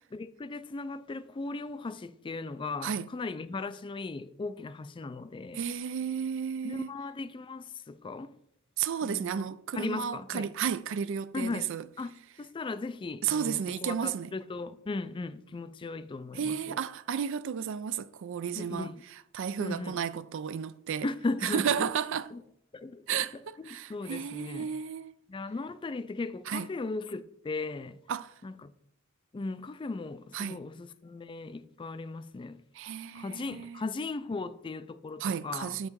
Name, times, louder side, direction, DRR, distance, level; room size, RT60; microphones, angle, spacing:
voice 1, 0.1-5.6 6.6-8.4 9.0-9.5 9.7-10.5 11.3-11.7 12.0-16.8 18.5-19.0 19.6-20.0 21.0-21.9 22.3-22.4 22.7-24.7 25.3-28.0 28.4-28.7 29.3-32.6 33.1-35.8, left 3 dB, 25° left, 0.3 m, -37 dB
voice 2, 5.5-6.9 8.8-11.9 13.2-14.3 16.3-18.9 19.3-21.1 21.4-22.3 23.1-25.1 26.5-26.7 28.1-28.3 30.3-30.6 32.7-33.8 35.2-35.9, right 7 dB, 60° right, 0.4 m, -33 dB
7.4 x 5.4 x 4.6 m
head